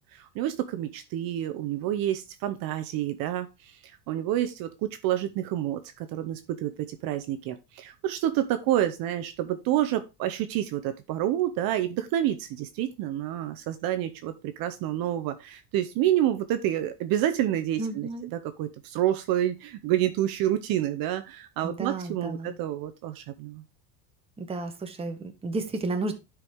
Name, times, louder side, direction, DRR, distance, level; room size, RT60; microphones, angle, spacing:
voice 1, 0.1-23.6, right 12 dB, 50° right, 9 dB, 0.8 m, -28 dB
voice 2, 17.8-18.3 21.6-22.6 24.4-26.2, right 3 dB, 15° right, 5 dB, 1.0 m, -32 dB
11.0 x 4.9 x 3.5 m, 0.26 s
cardioid pair, 155°, 46 cm